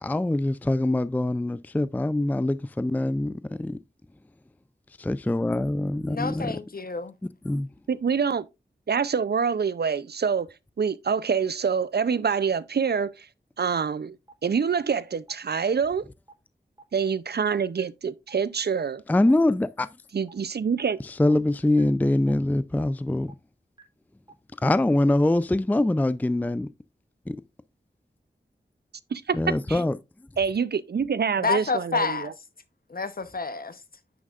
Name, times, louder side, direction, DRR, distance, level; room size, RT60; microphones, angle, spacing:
voice 1, 0.0-3.8 5.0-6.5 7.4-7.7 19.1-19.9 21.1-23.3 24.6-26.7 27.3-27.4 29.3-30.0, left 1 dB, 10° left, 0.4 m, -24 dB
voice 2, 6.1-7.1 31.4-32.3 32.9-33.8, left 4 dB, 55° left, 0.9 m, -29 dB
voice 3, 7.9-8.5 8.9-10.5 10.8-13.3 13.6-14.1 14.4-16.0 16.9-19.0 20.1-21.0 29.1-29.4 29.7-29.8 30.4-32.3, right 6 dB, 60° right, 0.5 m, -26 dB
sound 1, 13.8-13.9 14.3-14.4 14.8-14.9 15.3-15.4 15.8-15.9 16.3-16.4 16.8-16.9 17.3-17.4 17.8-17.9 18.3-18.4 18.8-18.9 19.3-19.4 19.8-19.9 20.3-20.4 20.8-20.9 21.3-21.4 21.8-21.9 22.3-22.4 22.8-22.9 23.3-23.4 23.8-23.9 24.3-24.4, right 4 dB, 25° right, 3.3 m, -49 dB
9.4 x 6.2 x 2.4 m
cardioid pair, 45°, 18 cm